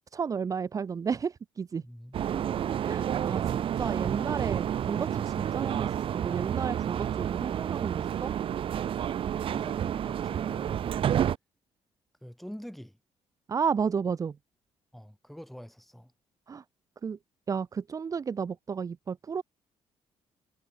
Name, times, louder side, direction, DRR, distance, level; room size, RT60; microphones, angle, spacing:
voice 1, 0.1-1.8 2.9-8.3 13.5-14.4 16.5-16.6 17.0-17.2 17.5-19.4, right 6 dB, 30° right, 1.4 m, -32 dB
voice 2, 1.8-2.6 9.5-11.2 12.2-13.0 14.9-16.1, equal, ahead, 6.4 m, -46 dB
sound 1, 2.1-11.4, right 10 dB, 55° right, 2.3 m, -30 dB
cardioid pair, 155°, 11 cm